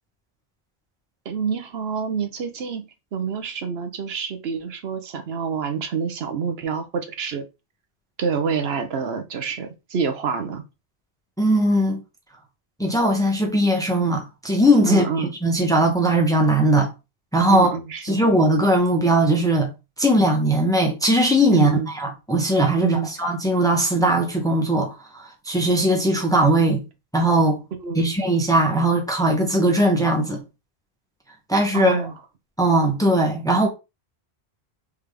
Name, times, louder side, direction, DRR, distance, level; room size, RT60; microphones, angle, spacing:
voice 1, 1.2-2.8 3.1-7.4 8.2-10.6 14.9-15.3 17.5-18.3 21.5-21.9 22.8-23.1 27.8-28.1 31.7-32.1, right 6 dB, 75° right, 1.0 m, -27 dB
voice 2, 11.4-12.0 12.8-16.9 17.3-17.7 18.0-19.7 20.0-26.8 27.1-27.6 27.9-30.4 31.5-32.1 32.6-33.7, right 1 dB, 5° left, 0.8 m, -19 dB
3.7 x 3.3 x 3.3 m
omnidirectional pair, 1.1 m